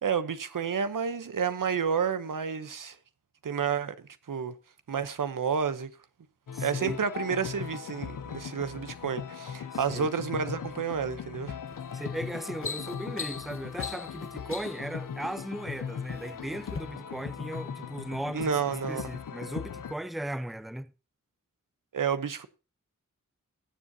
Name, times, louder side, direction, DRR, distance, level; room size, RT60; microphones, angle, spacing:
voice 1, 0.0-3.0 3.4-4.5 4.9-5.9 6.6-11.6 18.3-19.0 21.9-22.5, right 6 dB, 85° right, 0.9 m, -30 dB
sound 1, 6.5-19.9, left 7 dB, 90° left, 0.7 m, -39 dB
voice 2, 6.5-7.0 9.7-10.1 11.9-20.9, right 1 dB, ahead, 0.6 m, -37 dB
sound 2, 11.7-11.9 12.3-14.9 15.7-16.3 16.7-16.8, left 5 dB, 45° left, 0.8 m, -39 dB
20.5 x 7.4 x 2.8 m
wide cardioid pair, 60°, 31 cm